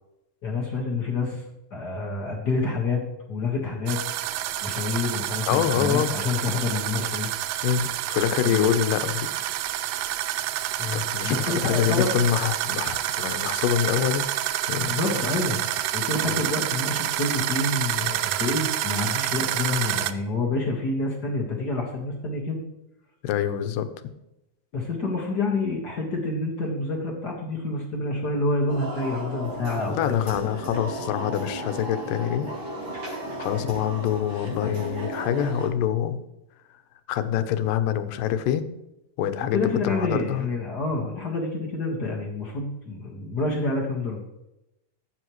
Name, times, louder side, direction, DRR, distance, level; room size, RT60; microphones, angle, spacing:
voice 1, 0.4-1.4 1.7-3.0 3.3-4.0 4.6-7.3 8.4-8.7 10.8-12.1 14.8-15.6 15.9-22.6 24.7-30.2 39.4-44.2, left 3 dB, 45° left, 0 dB, 1.3 m, -28 dB
sound 1, 3.9-20.1, right 13 dB, 85° right, 2.2 m, -28 dB
voice 2, 5.5-6.1 7.6-9.5 10.9-14.3 14.7-14.9 16.3-16.4 23.2-23.9 29.9-32.5 33.4-36.2 37.1-38.7 39.2-40.5, left 10 dB, 80° left, 10 dB, 2.4 m, -25 dB
sound 2, 28.7-35.7, right 1 dB, 35° right, 3.9 m, -34 dB
14.5 x 8.5 x 3.1 m, 0.89 s
omnidirectional pair, 3.9 m